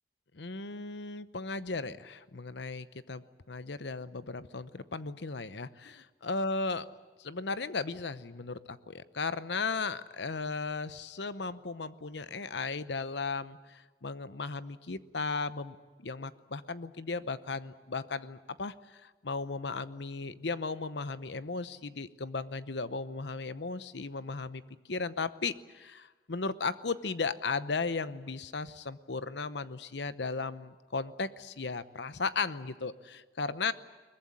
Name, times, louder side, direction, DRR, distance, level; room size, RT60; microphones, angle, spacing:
voice 1, 0.3-6.9 7.2-15.8 16.0-24.6 24.9-33.7, left 4 dB, 70° left, 14 dB, 0.9 m, -36 dB
22.0 x 20.0 x 9.7 m, 1.3 s
head